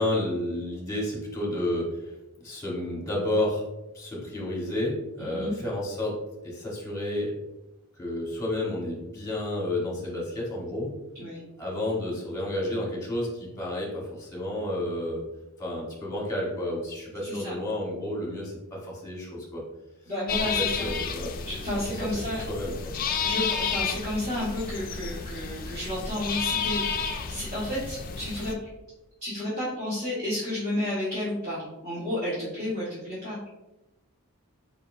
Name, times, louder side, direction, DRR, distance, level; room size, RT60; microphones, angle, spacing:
voice 1, 0.0-2.1 2.4-3.7 3.9-7.3 8.0-10.9 11.6-15.2 15.6-19.6 20.6-21.3 21.9-22.9, left 1 dB, 15° left, -4 dB, 1.3 m, -31 dB
voice 2, 5.2-5.5 11.2-11.4 17.2-17.5 20.1-20.9 21.4-22.4 23.2-28.5 29.2-33.4, left 1 dB, 35° right, -11 dB, 1.5 m, -31 dB
sound 1, 20.3-28.5, left 6 dB, 40° left, 0.4 m, -31 dB
4.7 x 4.0 x 2.6 m, 0.99 s
head